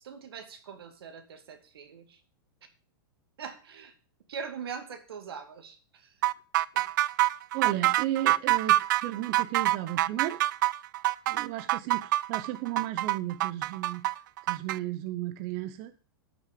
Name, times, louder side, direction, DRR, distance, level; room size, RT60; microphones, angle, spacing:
voice 1, 0.0-2.2 3.4-3.9 4.3-6.1 6.7-6.8, right 6 dB, 85° right, 8 dB, 2.4 m, -42 dB
sound 1, 6.2-14.8, right 15 dB, 55° right, 0.4 m, -26 dB
voice 2, 7.5-10.4 11.3-14.1 14.4-15.9, right 14 dB, 40° right, 10 dB, 0.8 m, -34 dB
13.0 x 6.3 x 5.2 m, 0.39 s
supercardioid pair, 150°, 12 cm